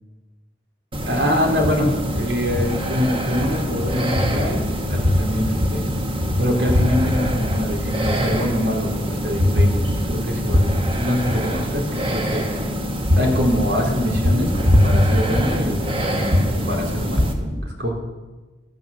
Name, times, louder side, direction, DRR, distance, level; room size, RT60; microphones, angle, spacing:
sound 1, 0.9-17.3, equal, 30° right, 1.4 m, -22 dB
voice 1, 1.0-5.9 6.4-12.5 13.1-17.9, left 1 dB, 80° right, 0 dB, 3.3 m, -24 dB
13.5 x 9.5 x 7.0 m, 1.2 s
head